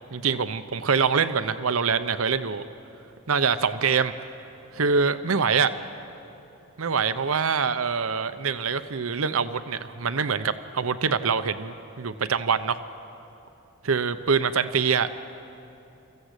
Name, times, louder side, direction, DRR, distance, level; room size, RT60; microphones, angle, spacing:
voice 1, 0.1-2.6 3.3-4.1 4.7-5.7 6.8-12.8 13.8-15.1, right 5 dB, 75° right, 11 dB, 0.8 m, -24 dB
27.5 x 14.5 x 8.2 m, 2.8 s
head